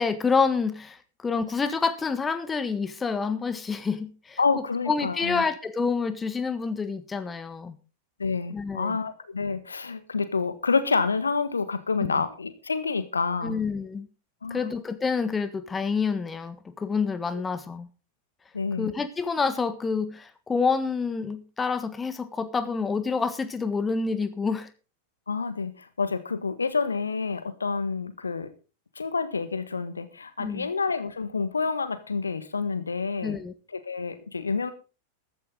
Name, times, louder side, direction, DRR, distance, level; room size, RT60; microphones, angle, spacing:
voice 1, 0.0-4.4 4.9-7.8 8.5-9.0 12.0-12.1 13.4-14.1 14.5-17.9 18.8-24.7 30.4-30.7 33.2-33.5, left 5 dB, 15° left, 12 dB, 1.5 m, -28 dB
voice 2, 4.4-5.4 8.2-13.6 14.4-14.7 17.3-17.4 18.5-18.9 25.3-28.5 28.9-33.4 33.7-34.7, left 4 dB, 75° left, 13 dB, 1.4 m, -28 dB
14.5 x 13.0 x 3.9 m, 0.34 s
figure-of-eight pair, 90°, 0 cm